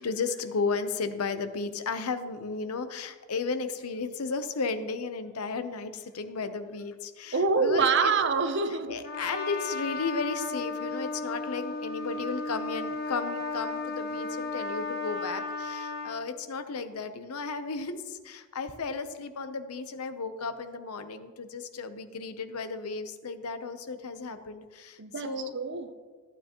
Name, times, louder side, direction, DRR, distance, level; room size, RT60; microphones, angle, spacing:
voice 1, 0.0-8.1 8.9-25.5, left 4 dB, 90° left, 0.7 m, -34 dB
voice 2, 7.3-9.0 25.0-25.9, right 4 dB, 55° right, 0.7 m, -26 dB
Trumpet, 9.0-16.2, left 3 dB, 45° left, 1.3 m, -34 dB
14.0 x 9.0 x 3.0 m
head